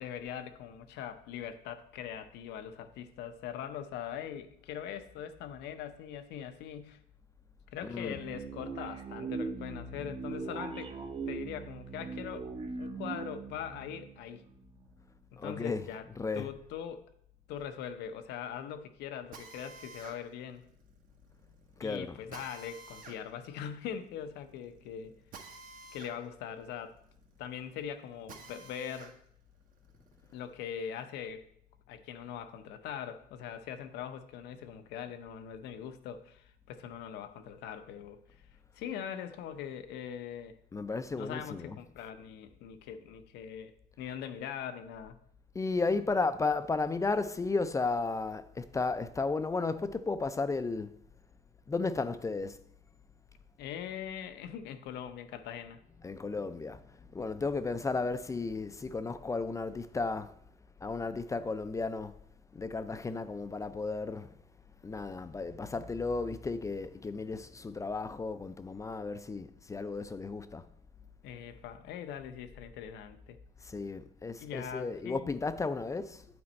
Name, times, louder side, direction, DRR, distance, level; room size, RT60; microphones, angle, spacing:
voice 1, 0.0-7.0 7.7-10.9 11.3-12.5 12.8-14.4 15.3-16.1 16.3-17.0 17.5-20.6 21.8-25.2 25.9-27.0 27.4-29.1 30.3-31.5 31.9-38.2 38.7-40.6 41.1-45.2 53.6-55.8 71.2-73.4 74.4-75.3, left 8 dB, 85° left, 0.6 m, -41 dB
voice 2, 7.8-8.2 15.4-16.5 21.8-22.2 40.7-41.8 45.5-51.0 51.7-52.6 56.0-60.3 60.8-62.2 62.5-64.3 64.8-70.6 73.6-76.2, left 3 dB, 20° left, 0.3 m, -34 dB
sound 1, 7.9-15.1, right 4 dB, 30° right, 0.7 m, -41 dB
Drill, 19.3-29.2 29.6-31.2, right 4 dB, 55° right, 1.0 m, -53 dB
8.7 x 4.3 x 4.1 m
cardioid pair, 110°, 17 cm